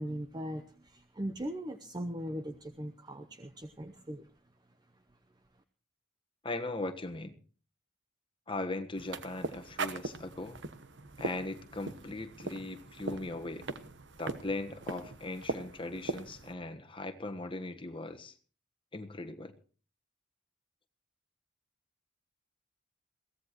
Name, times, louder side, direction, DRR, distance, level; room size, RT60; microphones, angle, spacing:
voice 1, 0.0-4.3, equal, 20° right, 9 dB, 0.8 m, -39 dB
voice 2, 6.4-7.3 8.5-10.6 11.2-13.7 14.2-18.3 18.9-19.5, left 2 dB, 25° left, 7 dB, 1.3 m, -39 dB
sound 1, 8.9-16.5, right 3 dB, 60° right, 1.1 m, -40 dB
22.0 x 16.5 x 3.1 m, 0.39 s
head